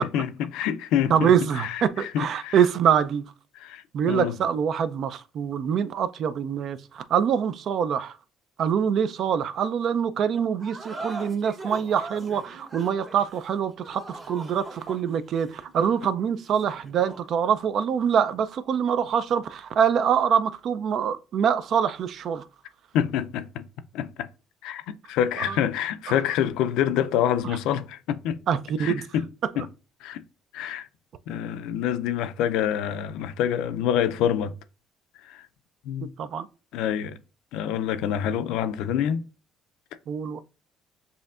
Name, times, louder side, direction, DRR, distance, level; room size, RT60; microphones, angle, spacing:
voice 1, 0.0-2.5 3.6-4.3 22.9-23.7 23.9-24.3 24.6-28.4 28.8-29.2 29.6-29.7 30.0-30.2 30.5-30.9 31.3-34.5 35.2-35.5 35.9-36.1 36.7-37.2 37.5-39.2, left 9 dB, 80° left, 0.4 m, -27 dB
voice 2, 1.1-3.2 3.9-8.2 8.6-22.5 25.4-25.6 28.5-29.0 29.5-29.7 36.0-36.5 40.1-40.4, right 8 dB, 60° right, 0.4 m, -25 dB
sound 1, 10.6-17.3, right 3 dB, 35° right, 1.5 m, -41 dB
6.7 x 2.7 x 2.4 m
supercardioid pair, 85°, 0 cm